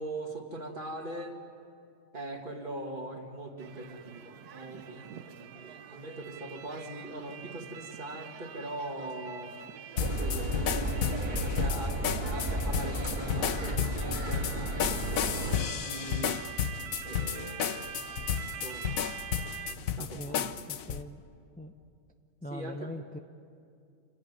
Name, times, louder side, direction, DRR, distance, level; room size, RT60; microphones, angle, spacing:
voice 1, 0.0-1.4 2.1-9.5 10.0-10.9 11.4-16.4 17.0-18.0 18.4-19.0 19.6-20.7 22.5-22.9, right 2 dB, 35° right, 3 dB, 2.2 m, -41 dB
sound 1, 3.6-19.8, right 9 dB, 85° right, 1.4 m, -45 dB
sound 2, 10.0-21.0, left 9 dB, 65° left, 1.2 m, -33 dB
sound 3, 10.0-15.6, right 1 dB, 15° right, 2.5 m, -33 dB
voice 2, 20.0-21.2 21.6-21.7 22.4-23.2, equal, 10° left, 5 dB, 0.4 m, -41 dB
28.0 x 15.5 x 9.5 m, 2.4 s
omnidirectional pair, 1.6 m